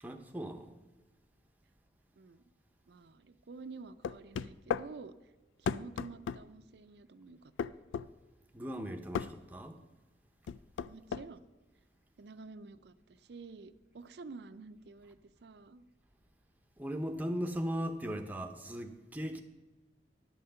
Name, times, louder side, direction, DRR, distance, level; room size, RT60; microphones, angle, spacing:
voice 1, 0.0-0.7 8.5-9.8 16.8-19.4, equal, 10° right, 0.6 m, -38 dB
voice 2, 2.9-5.3 5.6-7.5 10.9-11.4 12.2-15.8, right 4 dB, 60° right, 0.4 m, -50 dB
sound 1, 4.0-4.9 5.7-6.4 7.6-8.1 9.1-9.3 10.5-11.3, left 7 dB, 85° left, 0.3 m, -34 dB
11.0 x 5.6 x 6.8 m
head